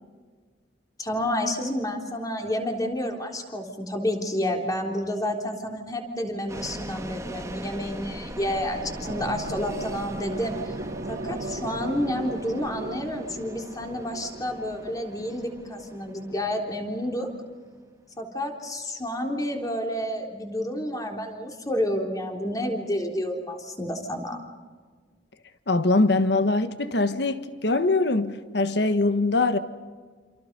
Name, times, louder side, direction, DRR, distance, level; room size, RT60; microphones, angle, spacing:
voice 1, 1.0-10.7 11.1-17.3 18.2-24.4, left 1 dB, 20° left, 3.7 m, -30 dB
sound 1, 6.3-16.1, left 1 dB, 50° left, 4.4 m, -50 dB
sound 2, 6.5-17.9, right 1 dB, 15° right, 1.4 m, -41 dB
sound 3, 8.3-15.4, right 2 dB, 55° right, 0.9 m, -38 dB
voice 2, 25.7-29.6, left 2 dB, 65° left, 1.4 m, -22 dB
28.5 x 28.0 x 5.4 m
head